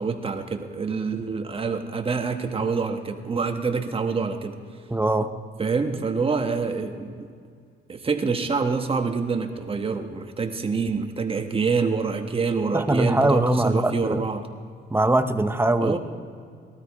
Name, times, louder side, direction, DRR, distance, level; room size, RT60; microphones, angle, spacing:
voice 1, 0.0-4.6 5.6-7.3 7.9-14.5 15.8-16.0, right 4 dB, 30° right, 5 dB, 1.3 m, -26 dB
voice 2, 4.9-5.3 12.7-14.2 14.9-16.0, right 1 dB, 10° right, 10 dB, 0.7 m, -21 dB
18.5 x 13.0 x 4.7 m, 2.2 s
cardioid pair, 90°, 20 cm